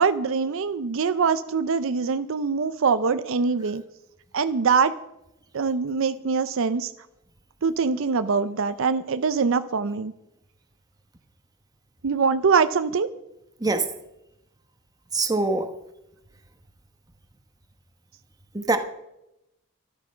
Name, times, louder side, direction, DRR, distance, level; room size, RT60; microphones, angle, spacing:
voice 1, 0.0-3.8 4.3-5.0 5.5-6.9 7.6-10.1 12.0-13.1, right 5 dB, 65° right, 12 dB, 0.5 m, -23 dB
voice 2, 15.1-15.7 18.5-18.8, right 3 dB, 15° right, 6 dB, 1.2 m, -23 dB
13.0 x 12.5 x 5.6 m, 0.87 s
head